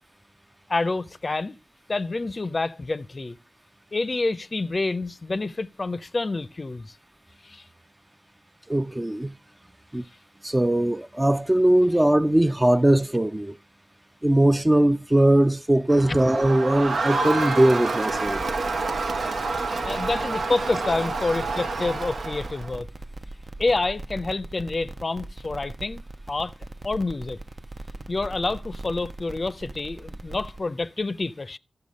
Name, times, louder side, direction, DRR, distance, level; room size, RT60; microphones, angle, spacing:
voice 1, 0.7-1.6 1.9-3.4 3.9-6.9 7.4-7.6 19.8-22.9 23.6-26.0 26.3-26.5 26.8-27.4 28.1-31.6, left 3 dB, 50° left, 0.5 m, -28 dB
voice 2, 8.7-9.3 9.9-10.0 10.4-13.6 14.2-18.4, right 1 dB, 20° right, 0.4 m, -20 dB
Crowd, 15.9-22.7, right 3 dB, 85° right, 0.8 m, -28 dB
sound 1, 18.1-30.6, right 2 dB, 55° right, 0.6 m, -39 dB
12.5 x 6.8 x 5.2 m
cardioid pair, 50°, 0 cm